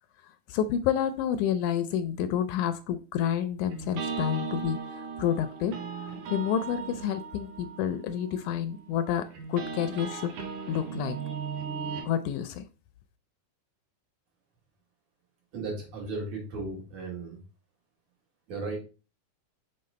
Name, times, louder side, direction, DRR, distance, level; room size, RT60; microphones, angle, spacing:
voice 1, 0.5-4.8 5.2-5.7 6.3-10.3 10.7-11.2 12.0-12.6, left 9 dB, 80° left, 11 dB, 1.8 m, -29 dB
sound 1, 3.7-12.1, right 6 dB, 90° right, 2.7 m, -37 dB
voice 2, 15.5-17.4 18.5-18.8, right 3 dB, 65° right, -2 dB, 3.5 m, -35 dB
6.6 x 4.0 x 4.1 m, 0.34 s
omnidirectional pair, 3.6 m